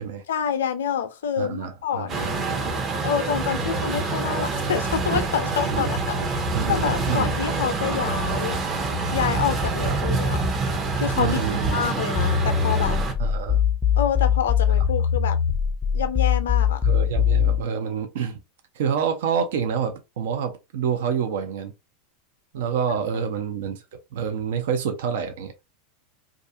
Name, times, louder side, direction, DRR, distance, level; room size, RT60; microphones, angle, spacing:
voice 1, 0.3-2.4 3.0-6.4 6.7-8.6 9.1-10.4 10.9-11.4 11.7-13.0 14.0-15.4 15.9-16.8 22.9-23.3, left 8 dB, 75° left, 0.4 m, -27 dB
voice 2, 1.4-2.3 5.6-5.9 6.5-7.3 9.9-10.0 11.2-11.8 13.2-13.6 16.8-18.4 18.8-21.7 22.5-23.8 24.1-25.5, right 7 dB, 70° right, 0.5 m, -27 dB
Truck, 2.1-13.1, right 3 dB, 30° right, 0.7 m, -26 dB
sound 1, 12.2-17.6, left 8 dB, 10° left, 0.5 m, -21 dB
2.4 x 2.4 x 2.7 m
hypercardioid pair, 90°, 0 cm